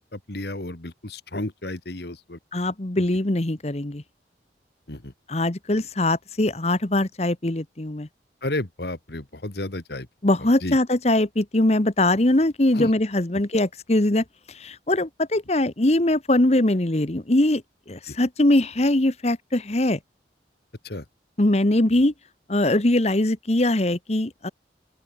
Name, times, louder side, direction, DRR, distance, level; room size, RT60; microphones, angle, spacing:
voice 1, 0.0-2.4 3.0-3.1 4.9-5.1 8.4-10.1 10.6-10.8 12.7-12.9 18.1-18.2 20.8-21.0, left 1 dB, 60° left, 1.9 m, -32 dB
voice 2, 2.5-4.0 5.3-8.1 10.2-17.6 17.9-20.0 21.4-22.1 22.5-24.5, left 1 dB, 35° left, 1.1 m, -22 dB
open air
head